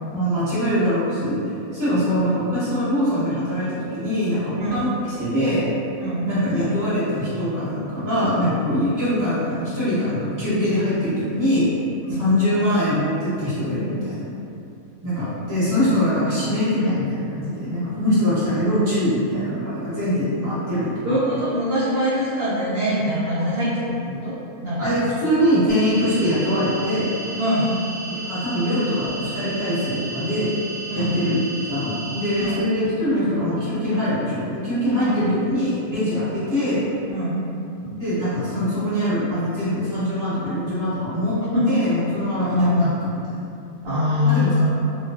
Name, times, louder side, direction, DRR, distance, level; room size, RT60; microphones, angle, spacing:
voice 1, 0.1-1.4 1.7-5.6 6.2-11.7 12.2-14.2 15.0-21.2 24.8-27.1 28.2-30.5 30.9-31.4 31.7-36.8 38.0-41.4 41.7-42.9 44.2-44.6, equal, 15° right, -13 dB, 0.8 m, -23 dB
voice 2, 4.6-4.9 6.0-6.3 12.1-12.2 15.2-15.3 21.0-25.0 27.3-27.7 30.9-31.2 32.4-32.6 35.0-35.2 37.1-37.4 37.8-37.9 41.5-41.7 42.3-42.9 43.8-44.7, left 1 dB, 65° right, -11 dB, 0.6 m, -23 dB
sound 1, 25.7-32.5, right 1 dB, 75° left, 0.5 m, -34 dB
2.3 x 2.3 x 2.3 m, 2.6 s
omnidirectional pair, 1.5 m